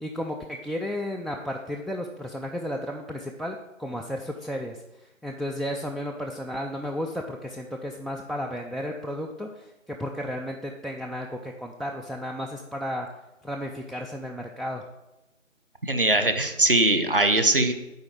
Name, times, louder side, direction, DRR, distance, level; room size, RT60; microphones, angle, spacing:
voice 1, 0.0-13.1 13.4-14.9, equal, ahead, 0 dB, 0.4 m, -33 dB
voice 2, 15.8-17.7, right 2 dB, 40° right, 7 dB, 0.9 m, -21 dB
9.5 x 4.2 x 7.5 m, 0.97 s
figure-of-eight pair, 170°, 40 cm